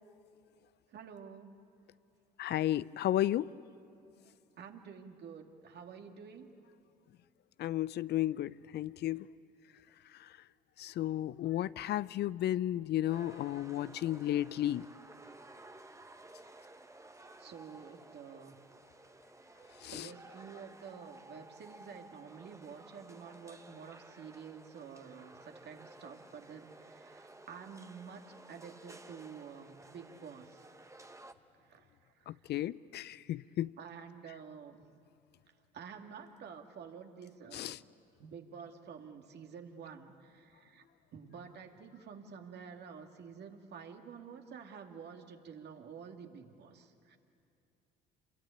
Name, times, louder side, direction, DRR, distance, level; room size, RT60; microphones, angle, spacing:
voice 1, 0.9-1.6 4.6-6.5 17.4-18.5 19.8-30.6 31.5-32.4 33.8-34.8 35.7-37.7 38.2-40.8 41.1-47.2, right 6 dB, 55° right, 4 dB, 2.4 m, -50 dB
voice 2, 2.4-3.5 7.6-9.3 10.1-10.3 10.8-14.9 19.8-20.1 32.3-33.7 37.5-37.8, left 13 dB, 55° left, 18 dB, 0.6 m, -33 dB
sound 1, 13.1-31.3, right 2 dB, 15° right, 1.5 m, -55 dB
28.0 x 22.5 x 9.2 m, 2.6 s
hypercardioid pair, 60°, 21 cm